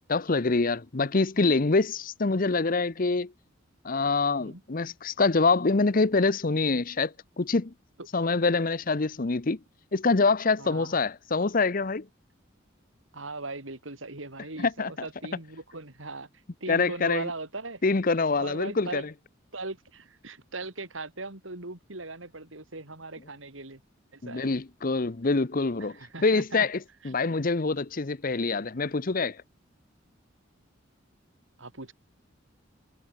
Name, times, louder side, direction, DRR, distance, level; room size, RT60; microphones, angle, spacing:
voice 1, 0.0-3.3 3.8-7.7 8.1-9.6 9.9-12.0 14.6-15.1 16.7-17.3 17.8-19.1 24.2-26.8 27.0-29.4, left 3 dB, 45° left, 0.8 m, -25 dB
voice 2, 10.6-10.9 13.1-16.3 16.6-17.8 18.3-19.1 19.5-23.8 24.1-24.5 25.8-26.7 27.0-27.1 31.6-31.9, right 3 dB, 85° right, 4.7 m, -39 dB
head